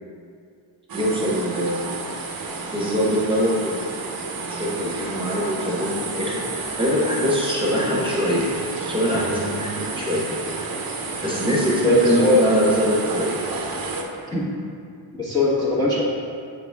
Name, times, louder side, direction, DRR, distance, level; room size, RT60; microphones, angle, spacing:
voice 1, 0.9-1.9 2.7-4.0 4.5-6.4 6.8-8.5 8.9-10.2 11.2-13.4, equal, 10° right, -5 dB, 1.2 m, -23 dB
sound 1, 0.9-14.0, right 3 dB, 50° right, 0.8 m, -31 dB
voice 2, 11.8-12.5 14.3-14.5 15.2-16.0, left 2 dB, 10° left, -9 dB, 1.1 m, -19 dB
8.1 x 4.0 x 3.5 m, 2.3 s
wide cardioid pair, 115°, 46 cm